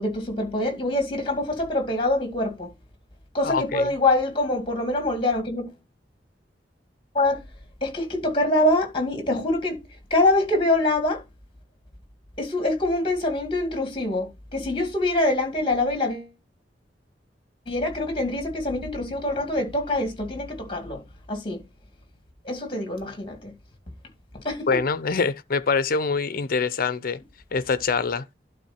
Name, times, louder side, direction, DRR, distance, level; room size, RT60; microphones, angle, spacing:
voice 1, 0.0-2.7 3.3-5.7 7.1-7.4 7.8-9.8 10.1-11.2 12.4-16.3 17.7-21.0 21.3-21.6 22.4-23.5 24.4-24.8, left 2 dB, 30° left, 2.2 m, -24 dB
voice 2, 3.4-3.9 24.7-27.2 27.5-28.3, left 4 dB, 55° left, 0.6 m, -24 dB
11.5 x 4.0 x 4.3 m
head